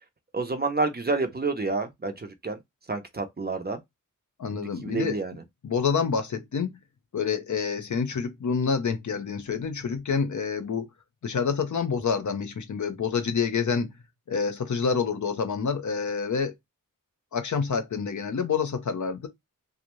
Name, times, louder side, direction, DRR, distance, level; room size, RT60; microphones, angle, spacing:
voice 1, 0.3-2.6 2.9-3.8 4.5-5.3, right 3 dB, 30° right, 0.6 m, -29 dB
voice 2, 4.4-5.2 5.6-6.7 7.1-10.9 11.2-13.9 14.3-16.5 17.3-19.3, left 5 dB, 60° left, 0.6 m, -27 dB
2.6 x 2.0 x 3.0 m
wide cardioid pair, 90°, 34 cm